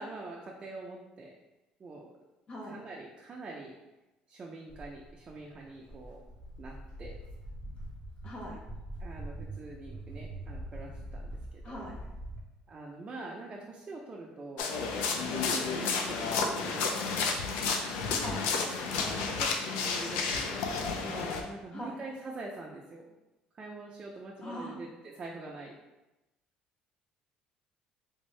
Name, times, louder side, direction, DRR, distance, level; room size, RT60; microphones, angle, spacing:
voice 1, 0.0-1.3 1.8-2.1 2.7-3.7 4.3-6.2 6.6-7.1 9.0-11.3 11.5-11.8 12.7-14.7 15.1-17.0 19.0-20.6 21.0-23.1 23.5-25.7, right 2 dB, 35° right, -2 dB, 0.5 m, -44 dB
voice 2, 2.5-2.8 8.2-8.6 11.6-12.0 18.1-18.5 21.7-22.0 24.4-24.8, equal, 40° left, -2 dB, 0.8 m, -40 dB
Walk footsteps, 4.7-12.4, right 1 dB, 60° left, 1.3 m, -43 dB
sound 1, 14.6-21.4, left 4 dB, 85° left, 0.4 m, -31 dB
3.5 x 2.7 x 3.1 m, 1.0 s
supercardioid pair, 95°, 3 cm